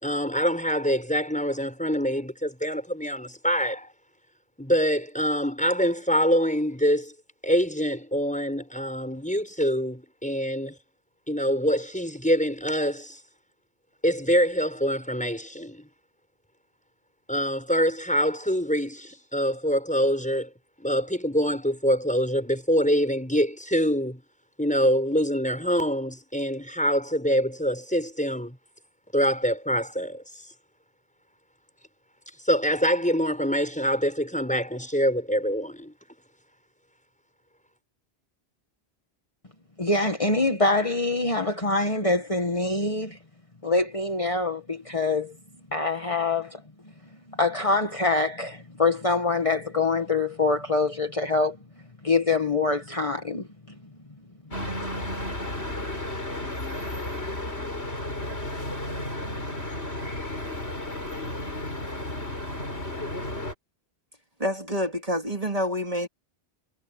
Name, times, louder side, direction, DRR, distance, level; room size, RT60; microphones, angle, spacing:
voice 1, 0.0-3.9 4.6-7.1 7.4-10.8 11.3-13.2 14.0-15.9 17.3-20.5 20.8-24.2 24.6-28.6 29.1-30.2 32.4-35.9, equal, 5° left, 5.9 m, -25 dB
voice 2, 39.8-43.2 43.6-45.3 45.7-46.6 47.4-51.6 52.0-53.5, left 3 dB, 30° left, 1.7 m, -24 dB
sound 1, 54.5-63.5, left 1 dB, 85° left, 6.2 m, -33 dB
voice 3, 64.4-66.1, equal, 35° right, 2.8 m, -27 dB
omnidirectional pair, 1.1 m